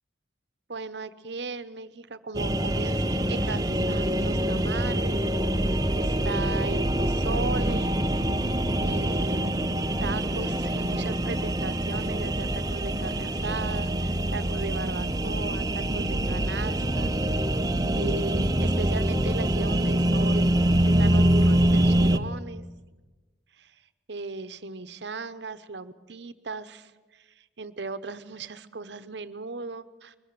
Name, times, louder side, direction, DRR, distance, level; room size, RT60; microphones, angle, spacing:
voice 1, 0.7-5.2 5.9-8.0 8.8-9.6 10.0-17.1 17.9-22.6 23.6-23.7 24.1-27.2 27.6-30.2, right 3 dB, 65° right, 13 dB, 1.0 m, -37 dB
sound 1, 2.3-22.2, right 1 dB, 20° right, 0.8 m, -25 dB
22.0 x 15.0 x 9.4 m, 1.2 s
head